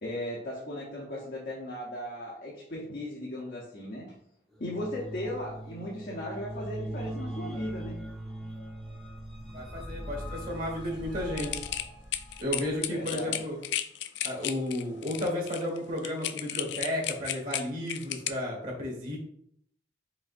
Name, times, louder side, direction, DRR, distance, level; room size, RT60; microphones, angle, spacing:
voice 1, 0.0-4.1 4.6-8.0 12.9-13.4, left 1 dB, 55° left, -4 dB, 0.8 m, -37 dB
sound 1, 4.5-12.8, right 1 dB, ahead, 0.8 m, -40 dB
voice 2, 9.5-11.6 12.4-13.6 14.2-19.2, left 1 dB, 50° right, 0 dB, 1.6 m, -33 dB
sound 2, 11.4-18.3, left 11 dB, 70° left, 0.3 m, -34 dB
5.0 x 3.5 x 2.5 m, 0.73 s
head